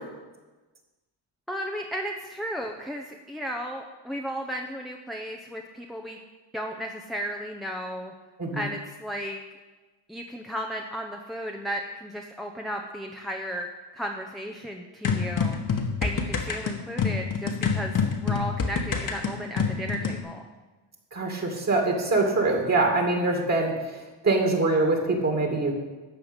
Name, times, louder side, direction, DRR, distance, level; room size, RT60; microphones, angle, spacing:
voice 1, 1.5-6.2 6.5-8.1 8.5-9.4 10.1-13.7 13.9-20.5, equal, ahead, 1 dB, 0.8 m, -34 dB
sound 1, 15.0-20.2, left 5 dB, 45° left, 1.5 m, -27 dB
voice 2, 21.1-25.7, right 2 dB, 35° right, 1 dB, 2.3 m, -24 dB
13.5 x 4.8 x 9.0 m, 1.2 s
cardioid pair, 115°, 46 cm